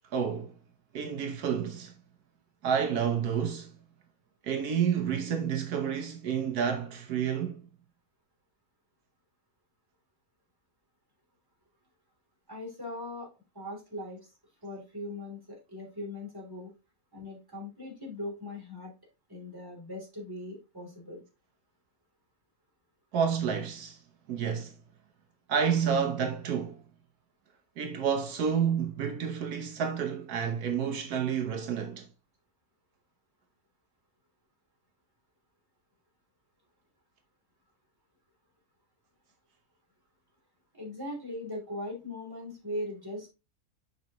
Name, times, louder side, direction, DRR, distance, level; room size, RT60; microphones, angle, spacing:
voice 1, 0.1-0.5 0.9-1.9 2.6-3.7 4.4-7.6 23.1-24.0 24.3-24.7 25.5-26.8 27.8-32.1, right 7 dB, 80° right, 1.4 m, -29 dB
voice 2, 12.5-13.3 13.5-14.3 14.6-16.7 17.1-18.9 19.3-21.2 40.7-43.3, left 1 dB, 15° right, 3.1 m, -39 dB
7.2 x 5.4 x 2.9 m
omnidirectional pair, 1.6 m